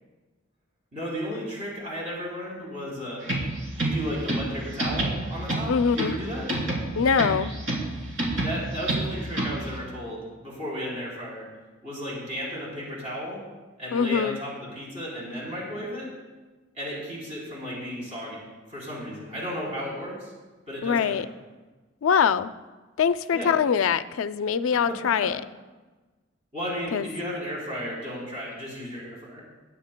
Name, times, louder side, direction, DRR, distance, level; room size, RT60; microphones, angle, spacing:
voice 1, 0.9-3.3 3.8-6.5 8.4-11.5 11.8-13.4 13.8-16.1 16.7-20.3 20.7-21.3 23.3-23.6 24.9-25.3 26.5-29.4, equal, 35° right, -6 dB, 3.6 m, -34 dB
sound 1, 3.2-9.8, right 2 dB, 70° right, 2.9 m, -29 dB
voice 2, 5.7-6.2 6.9-7.5 13.9-14.4 20.8-21.3 22.0-22.5 23.0-25.4 26.9-27.1, left 6 dB, 90° left, 13 dB, 0.4 m, -23 dB
20.5 x 9.0 x 2.2 m, 1.2 s
head